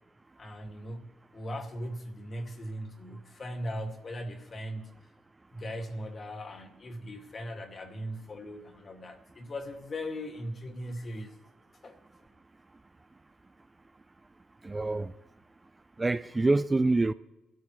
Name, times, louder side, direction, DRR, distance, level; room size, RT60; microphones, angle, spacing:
voice 1, 0.4-1.1 1.3-4.9 5.5-11.3 11.8-12.0, equal, 40° left, 2.2 m, -39 dB
voice 2, 14.6-15.1 16.0-17.1, right 2 dB, 20° right, 0.4 m, -26 dB
23.0 x 13.0 x 3.2 m
cardioid pair, 90°, 0 cm